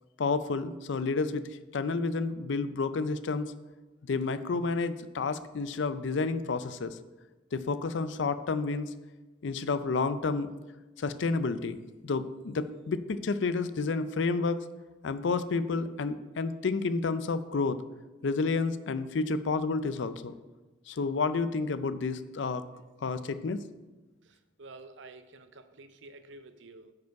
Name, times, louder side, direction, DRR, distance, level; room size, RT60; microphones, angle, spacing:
voice 1, 0.2-3.5 4.1-7.0 7.5-8.9 9.4-10.5 11.0-11.8 12.0-14.6 15.0-17.8 18.2-20.3 20.9-22.6 23.0-23.6, left 4 dB, 70° left, 13 dB, 0.4 m, -30 dB
voice 2, 24.2-26.9, right 3 dB, 75° right, 9 dB, 0.6 m, -50 dB
9.3 x 4.9 x 4.7 m, 1.1 s
head